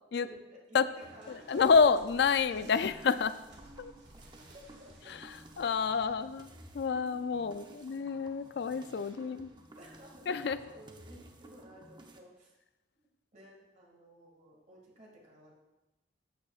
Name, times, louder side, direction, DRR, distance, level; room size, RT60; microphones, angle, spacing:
voice 1, 0.2-0.8 1.1-1.9 4.5-5.1 7.4-7.6 9.2-9.4 9.6-12.5 13.3-15.5, equal, 40° right, -3 dB, 2.1 m, -54 dB
sound 1, 1.0-8.0 8.4-9.1 9.9-10.2, right 1 dB, 70° right, 2.0 m, -57 dB
voice 2, 1.3-3.3 3.8-3.9 5.6-6.5 6.7-9.5 10.3-10.6, left 5 dB, 60° left, 13 dB, 0.3 m, -28 dB
sound 2, 2.6-12.2, right 1 dB, 25° right, 0.6 m, -55 dB
12.5 x 8.3 x 2.4 m, 1.0 s
head